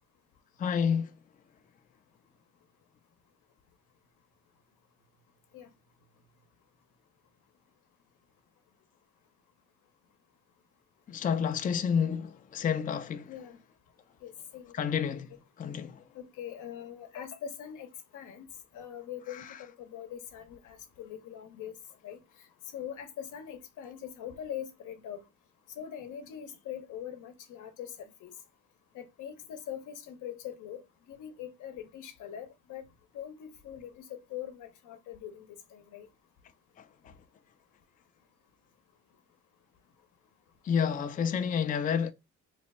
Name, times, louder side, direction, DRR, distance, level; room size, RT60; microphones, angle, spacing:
voice 1, 0.6-1.2 11.1-13.5 14.7-16.1 19.3-19.6 36.8-37.2 40.6-42.1, left 7 dB, 30° left, 0.4 m, -30 dB
voice 2, 14.2-14.7 16.1-18.5 18.7-21.7 22.0-22.2 22.7-25.2 25.8-27.9 28.2-28.3 28.9-30.8 31.1-32.8 33.1-35.5 35.7-36.1, left 9 dB, 85° left, 0.8 m, -42 dB
3.0 x 2.2 x 4.1 m
cardioid pair, 90°, 30 cm